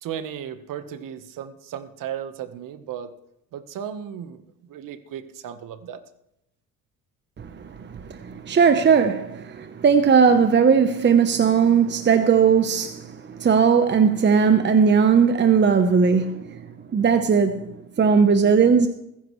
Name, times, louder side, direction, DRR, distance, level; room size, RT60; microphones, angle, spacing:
voice 1, 0.0-3.1 3.5-4.4 4.7-6.0, right 9 dB, 65° right, 1.3 m, -35 dB
voice 2, 7.4-16.6 16.9-18.9, right 6 dB, 30° right, 0.9 m, -18 dB
20.5 x 10.0 x 3.2 m
supercardioid pair, 80°, 34 cm